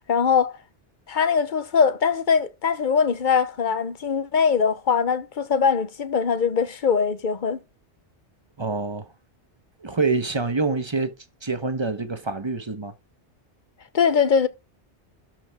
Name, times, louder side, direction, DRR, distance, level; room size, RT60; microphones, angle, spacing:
voice 1, 0.1-0.6 1.1-7.6 13.9-14.5, left 6 dB, 45° left, 1.0 m, -21 dB
voice 2, 8.6-9.1 9.8-11.1 11.4-12.9, right 3 dB, 25° right, 1.2 m, -26 dB
12.5 x 6.2 x 3.6 m
omnidirectional pair, 1.2 m